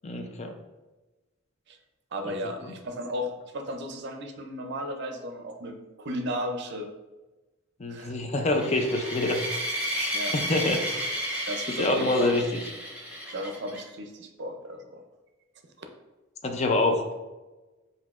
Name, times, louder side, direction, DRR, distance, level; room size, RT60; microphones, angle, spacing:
voice 1, 0.0-0.5 7.8-9.4 9.9-10.9 11.8-12.6 16.4-17.1, left 2 dB, 35° left, 4 dB, 0.4 m, -26 dB
voice 2, 2.1-6.9 7.9-8.1 10.1-10.3 11.5-12.5 13.3-15.0 15.8-15.9, equal, 55° right, 5 dB, 0.5 m, -34 dB
sound 1, 8.5-13.8, equal, 5° right, 0.9 m, -32 dB
7.1 x 2.7 x 2.4 m, 1.1 s
head